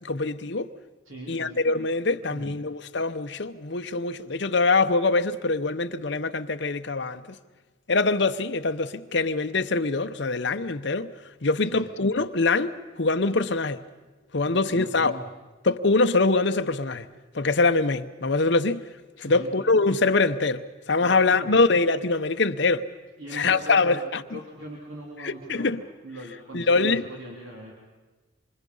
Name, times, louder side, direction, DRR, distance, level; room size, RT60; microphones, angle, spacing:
voice 1, 0.0-0.7 1.3-7.2 7.9-11.1 11.4-13.8 14.3-15.1 15.6-17.1 17.3-18.8 19.2-22.9 23.3-24.4 25.2-25.8 26.5-27.0, left 3 dB, 55° left, 0.9 m, -24 dB
voice 2, 1.0-1.6 2.1-2.6 11.6-11.8 14.4-15.2 19.2-19.6 21.0-21.6 23.2-25.8 26.0-27.7, right 1 dB, 80° right, 3.4 m, -41 dB
26.5 x 26.5 x 5.5 m
head